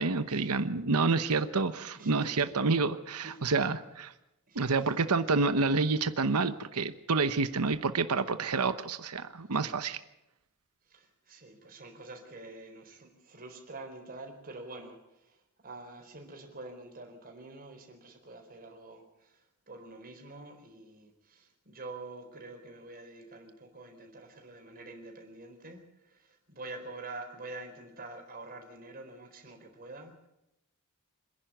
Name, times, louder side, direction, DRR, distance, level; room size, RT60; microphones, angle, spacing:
voice 1, 0.0-4.1 4.5-10.0, right 4 dB, 90° right, 11 dB, 1.0 m, -28 dB
voice 2, 1.9-2.3 3.2-3.4 4.5-4.9 10.9-15.0 15.2-15.4 15.6-30.3, right 2 dB, 40° right, 4 dB, 4.3 m, -47 dB
26.5 x 11.0 x 9.2 m, 0.90 s
head